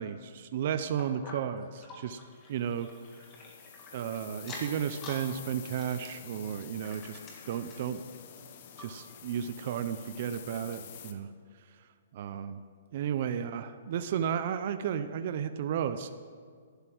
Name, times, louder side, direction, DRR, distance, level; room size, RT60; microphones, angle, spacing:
voice 1, 0.0-2.2 2.5-2.9 3.9-7.2 7.5-8.0 8.8-11.3 12.1-12.6 12.9-16.1, right 8 dB, 40° right, 9 dB, 0.6 m, -33 dB
sound 1, 1.0-4.0 4.4-5.3 5.6-7.9 8.4-8.5 8.8-8.9 9.5-9.6, left 3 dB, 20° left, 1.8 m, -48 dB
sound 2, 2.6-11.1, left 8 dB, 40° left, 1.0 m, -49 dB
12.0 x 11.5 x 6.1 m, 2.1 s
hypercardioid pair, 170°, 0 cm